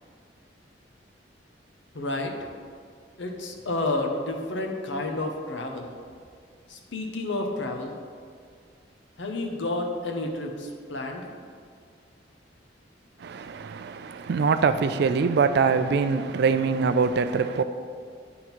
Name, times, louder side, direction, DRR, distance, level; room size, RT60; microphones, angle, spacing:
voice 1, 1.9-2.5 3.2-5.9 6.7-7.9 9.2-11.3, left 2 dB, 85° left, 0.9 m, -30 dB
voice 2, 13.2-17.6, right 5 dB, 60° right, 0.4 m, -23 dB
10.5 x 3.7 x 4.5 m
head